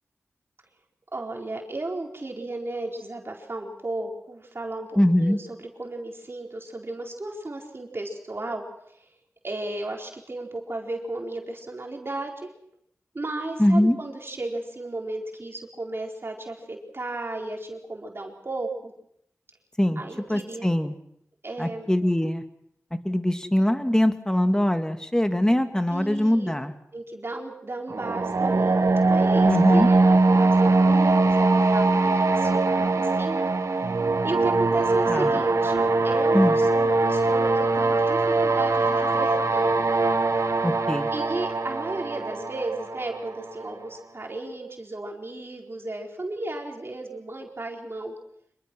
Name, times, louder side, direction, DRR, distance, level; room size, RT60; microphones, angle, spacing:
voice 1, 1.1-8.6 9.4-12.5 13.1-18.9 20.0-20.7 21.4-21.9 25.9-26.5 26.9-33.4 33.7-33.9 34.2-39.7 41.1-48.1, right 2 dB, 50° right, 1 dB, 4.3 m, -34 dB
voice 2, 5.0-5.4 13.6-14.0 19.8-20.0 20.3-20.9 21.6-22.4 23.1-26.7 29.5-29.9 35.1-35.3 36.3-36.5 40.6-41.1, left 1 dB, 10° left, 8 dB, 2.3 m, -21 dB
sound 1, 27.9-43.7, right 3 dB, 75° right, 1.6 m, -22 dB
26.0 x 22.0 x 6.3 m, 0.72 s
cardioid pair, 45°, 5 cm